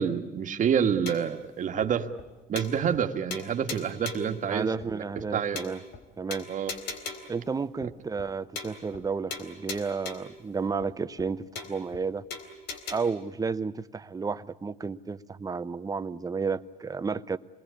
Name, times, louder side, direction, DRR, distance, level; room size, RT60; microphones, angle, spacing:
voice 1, 0.0-2.1 2.5-5.6 6.5-6.7, right 7 dB, 50° right, 1.8 m, -28 dB
sound 1, 1.1-1.4 1.8-1.9 2.2-2.3 2.6-3.0 3.3-4.4 4.8-4.9 5.2-5.3 5.6-6.0 6.3-7.4 7.8-7.9 8.2-8.3 8.6-9.0 9.3-10.4 10.8-10.9 11.2-11.3 11.6-12.0 12.3-13.0, left 4 dB, 80° left, 3.8 m, -39 dB
voice 2, 4.5-5.8 6.2-6.5 7.3-12.2 12.9-17.4, right 5 dB, 20° right, 0.9 m, -32 dB
27.0 x 21.0 x 8.5 m
cardioid pair, 110°, 17 cm